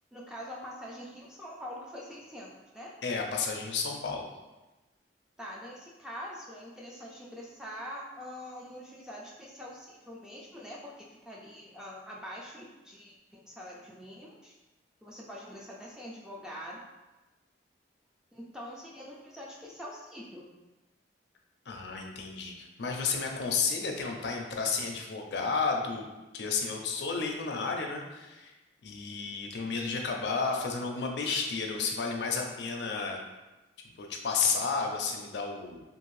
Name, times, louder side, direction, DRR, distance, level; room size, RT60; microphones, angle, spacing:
voice 1, 0.1-2.9 5.4-14.5 15.0-16.8 18.3-20.5, equal, 5° right, -4 dB, 0.3 m, -44 dB
voice 2, 3.0-4.3 21.7-26.1 26.3-28.5 28.8-33.2 34.0-35.8, left 4 dB, 65° left, 2 dB, 0.4 m, -32 dB
2.6 x 2.6 x 3.1 m, 1.1 s
head